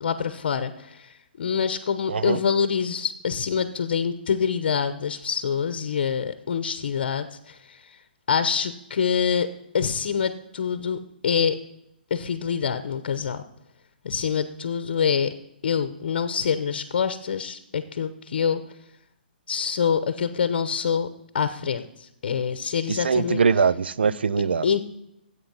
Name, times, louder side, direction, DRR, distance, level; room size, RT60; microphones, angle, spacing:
voice 1, 0.0-7.8 8.3-9.5 9.7-11.6 12.1-13.4 14.0-15.3 15.6-18.6 19.5-21.1 21.3-23.4 24.6-24.8, left 7 dB, 65° left, 0.9 m, -26 dB
voice 2, 2.1-2.4 22.9-24.7, right 5 dB, 90° right, 0.5 m, -22 dB
14.0 x 8.3 x 5.5 m
hypercardioid pair, 155°, 5 cm